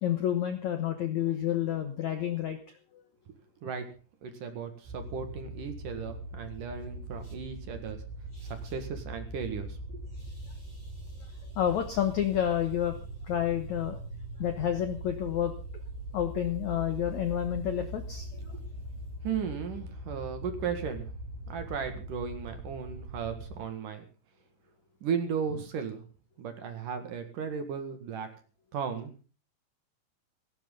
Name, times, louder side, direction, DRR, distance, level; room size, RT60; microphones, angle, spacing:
voice 1, 0.0-2.6 2.9-3.0 8.3-8.5 10.2-12.9 13.2-14.0 14.4-15.5 16.1-18.3, left 10 dB, 70° left, 8 dB, 1.8 m, -30 dB
voice 2, 4.2-8.0 8.4-10.0 19.2-21.1 21.5-24.0 25.0-26.0 26.4-28.3 28.7-29.1, right 6 dB, 55° right, 7 dB, 3.1 m, -35 dB
sound 1, 4.9-23.6, right 1 dB, 75° right, 4.1 m, -41 dB
17.5 x 16.5 x 3.9 m, 0.37 s
omnidirectional pair, 5.0 m